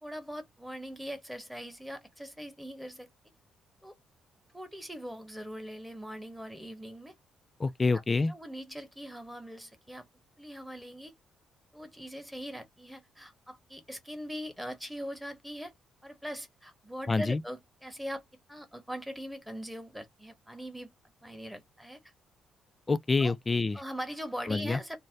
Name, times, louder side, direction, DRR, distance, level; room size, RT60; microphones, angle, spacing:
voice 1, 0.0-3.1 3.8-3.9 4.5-7.1 7.9-8.0 8.3-10.0 10.4-11.1 11.7-15.7 16.0-18.2 18.5-20.9 21.2-22.0 23.2-23.3 23.7-25.0, equal, 5° right, 1.0 m, -41 dB
voice 2, 7.6-8.3 17.1-17.4 22.9-23.8 24.5-24.8, left 3 dB, 25° left, 0.3 m, -27 dB
2.6 x 2.1 x 3.3 m
cardioid pair, 90°, 0 cm